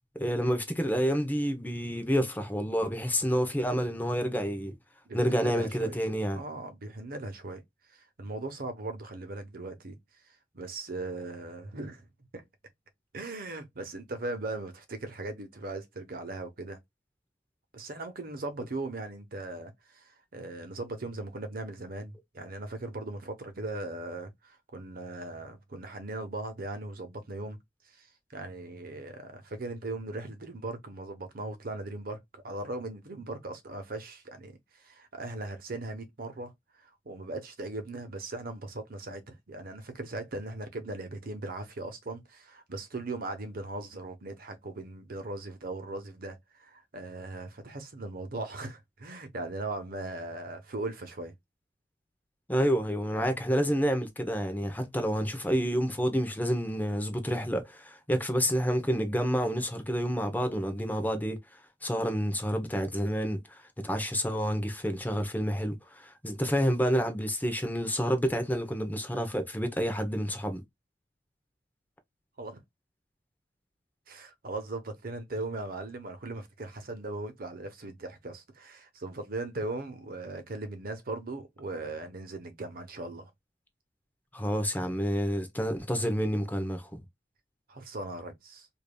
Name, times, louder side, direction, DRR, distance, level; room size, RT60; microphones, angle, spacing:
voice 1, 0.1-4.8 5.1-6.4 52.5-61.4 61.8-70.6 84.3-87.0, equal, 10° left, 0.8 m, -29 dB
voice 2, 5.1-6.0 6.3-7.6 7.9-10.0 10.5-12.1 12.3-12.4 13.1-16.8 17.7-27.6 27.8-28.1 28.3-36.5 36.8-51.3 72.4-72.6 74.1-83.3 87.7-88.7, right 2 dB, 55° right, 0.9 m, -39 dB
5.1 x 2.6 x 2.2 m
head